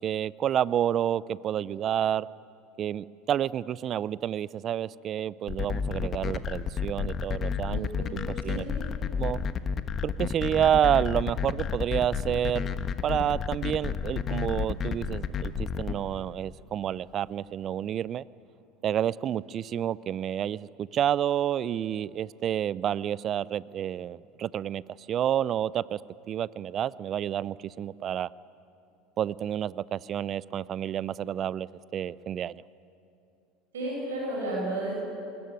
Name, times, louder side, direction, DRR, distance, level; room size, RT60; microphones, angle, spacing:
voice 1, 0.0-2.3 2.8-8.6 9.2-9.4 10.0-12.7 13.0-18.2 18.8-24.8 25.1-26.0 26.3-28.3 29.2-32.6, right 10 dB, 45° right, 21 dB, 0.5 m, -29 dB
sound 1, 5.5-15.9, left 6 dB, 40° left, 1.3 m, -30 dB
voice 2, 7.7-8.9 33.7-34.9, right 1 dB, 80° right, -2 dB, 7.6 m, -33 dB
24.5 x 21.0 x 9.2 m, 2.6 s
hypercardioid pair, 80°, 0 cm